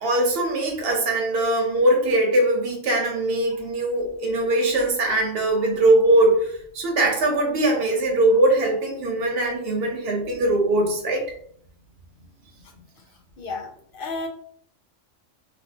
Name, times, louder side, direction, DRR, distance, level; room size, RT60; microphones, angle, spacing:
voice 1, 0.0-6.5 6.7-11.2, right 1 dB, 50° right, 0 dB, 1.0 m, -21 dB
voice 2, 13.4-14.3, left 3 dB, 55° left, 1 dB, 0.6 m, -33 dB
3.1 x 2.8 x 2.8 m, 0.64 s
omnidirectional pair, 1.4 m